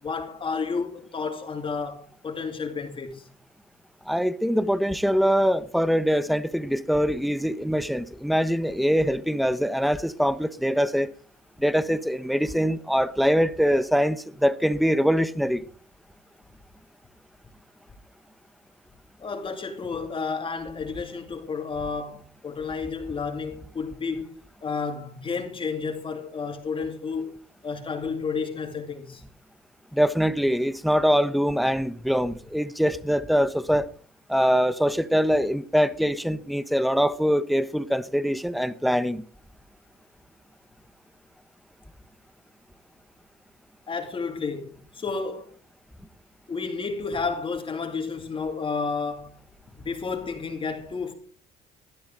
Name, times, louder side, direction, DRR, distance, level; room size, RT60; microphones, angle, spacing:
voice 1, 0.0-3.3 19.2-24.3 24.6-27.3 27.6-29.2 43.9-45.5 46.5-49.4 49.8-51.1, left 5 dB, 30° left, 2.5 m, -31 dB
voice 2, 4.1-11.1 11.6-15.6 29.9-33.9 34.3-39.2, equal, ahead, 0.9 m, -23 dB
17.5 x 12.0 x 3.8 m
cardioid pair, 110°, 17 cm